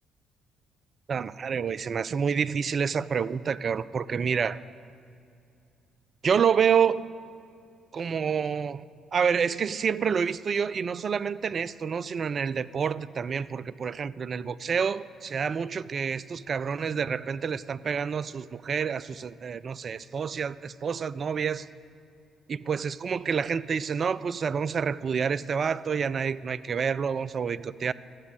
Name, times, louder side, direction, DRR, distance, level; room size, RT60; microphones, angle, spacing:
voice 1, 1.1-4.6 6.2-7.1 7.9-8.8 9.1-21.7 22.5-27.9, right 6 dB, 45° right, 17 dB, 0.3 m, -28 dB
11.5 x 8.2 x 8.9 m, 2.5 s
figure-of-eight pair, 45°, 0 cm